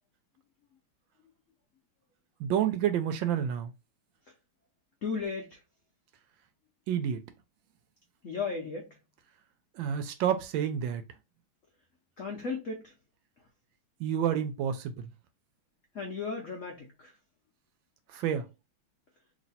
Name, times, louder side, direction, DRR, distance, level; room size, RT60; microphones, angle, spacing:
voice 1, 2.4-3.7 6.9-7.2 9.8-11.0 14.0-15.1 18.1-18.5, right 9 dB, 75° right, 1.2 m, -29 dB
voice 2, 5.0-5.6 8.2-9.0 12.2-13.0 13.4-13.5 15.9-17.2, left 4 dB, 70° left, 0.7 m, -36 dB
3.1 x 2.8 x 4.0 m
omnidirectional pair, 2.3 m